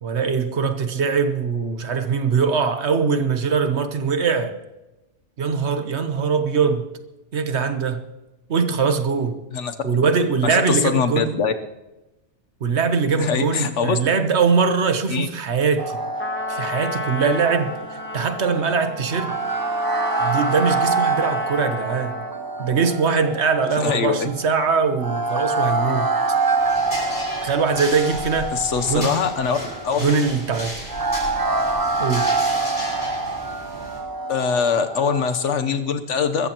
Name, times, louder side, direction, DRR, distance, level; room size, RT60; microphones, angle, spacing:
voice 1, 0.0-4.6 5.4-6.9 7.3-8.0 8.5-9.4 9.8-11.3 12.6-16.0 16.5-17.7 18.1-19.4 20.2-22.2 22.6-26.1 27.4-28.5 28.9-29.1 30.0-30.7 32.0-32.3, right 5 dB, 70° right, 1.3 m, -21 dB
voice 2, 10.4-11.5 13.2-14.0 15.1-15.3 23.8-24.3 28.5-29.6 29.8-30.1 34.3-36.5, left 6 dB, 85° left, 1.3 m, -22 dB
sound 1, 15.8-35.7, right 3 dB, 25° right, 0.6 m, -26 dB
Trumpet, 16.2-22.4, left 2 dB, 10° left, 0.7 m, -32 dB
sound 2, 26.6-34.0, left 1 dB, 50° left, 5.9 m, -34 dB
23.0 x 14.0 x 3.0 m
omnidirectional pair, 1.2 m